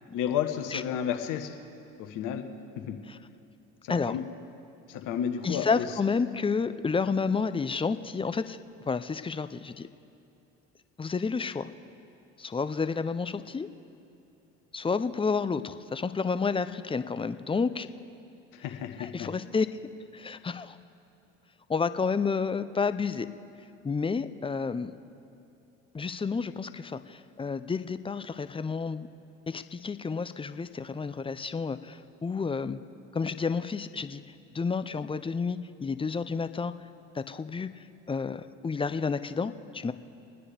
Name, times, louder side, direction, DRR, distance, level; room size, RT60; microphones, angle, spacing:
voice 1, 0.1-1.6 2.0-2.4 2.8-3.0 3.8-4.2 4.9-5.9 18.5-19.3, left 9 dB, 65° left, 5 dB, 1.3 m, -32 dB
voice 2, 5.4-8.6 8.9-9.9 11.0-11.7 12.4-13.7 14.7-17.9 19.0-19.7 20.1-20.8 21.7-23.3 23.8-24.9 25.9-29.1 29.5-32.8 33.1-34.2 34.5-36.7 37.1-39.9, left 5 dB, 15° left, 12 dB, 0.5 m, -30 dB
26.5 x 9.8 x 3.4 m, 2.7 s
hypercardioid pair, 65°, 34 cm